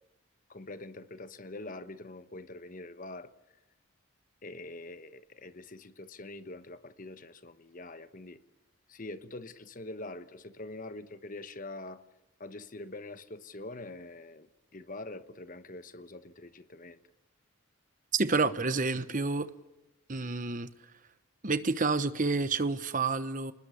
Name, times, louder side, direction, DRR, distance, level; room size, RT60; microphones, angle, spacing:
voice 1, 0.5-3.3 4.4-8.4 8.9-12.0 12.4-17.0, left 2 dB, 40° left, 1.1 m, -44 dB
voice 2, 18.1-19.5 20.1-20.7 21.4-23.5, right 3 dB, 40° right, 1.1 m, -29 dB
29.0 x 20.5 x 7.1 m
head